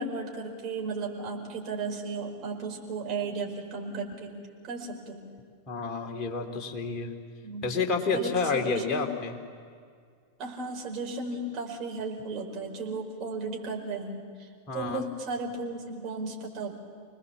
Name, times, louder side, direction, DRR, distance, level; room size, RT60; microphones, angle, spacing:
voice 1, 0.0-4.3 4.6-5.2 7.4-7.8 8.1-9.1 10.4-16.7, right 3 dB, 35° right, 0 dB, 4.9 m, -35 dB
voice 2, 5.7-7.1 7.6-9.4 14.7-15.0, left 4 dB, 30° left, 2 dB, 2.7 m, -29 dB
27.5 x 20.0 x 7.3 m, 2.1 s
figure-of-eight pair, 90°, 0 cm